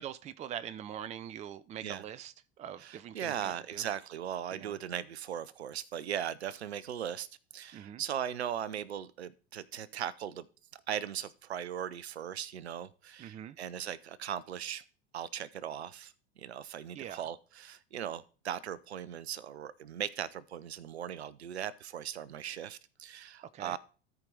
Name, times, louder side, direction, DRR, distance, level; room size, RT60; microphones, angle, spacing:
voice 1, 0.0-3.8 4.5-4.8 7.7-8.0 13.2-13.6 16.9-17.2 23.5-23.8, right 10 dB, 20° right, 16 dB, 0.5 m, -43 dB
voice 2, 2.8-7.3 7.5-10.5 10.9-14.8 15.1-23.8, right 9 dB, 75° right, 18 dB, 0.6 m, -38 dB
13.0 x 5.0 x 3.9 m, 0.37 s
figure-of-eight pair, 75°, 33 cm